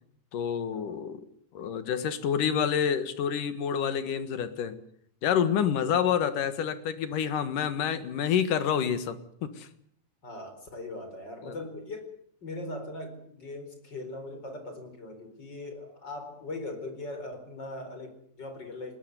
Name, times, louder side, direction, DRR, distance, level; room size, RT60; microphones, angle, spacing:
voice 1, 0.3-1.2 1.5-4.8 5.2-9.7 11.4-11.5, left 8 dB, 80° left, 12 dB, 3.2 m, -28 dB
voice 2, 10.2-12.1 12.4-19.0, left 2 dB, 30° left, 7 dB, 4.8 m, -40 dB
21.0 x 19.0 x 9.5 m, 0.64 s
omnidirectional pair, 3.7 m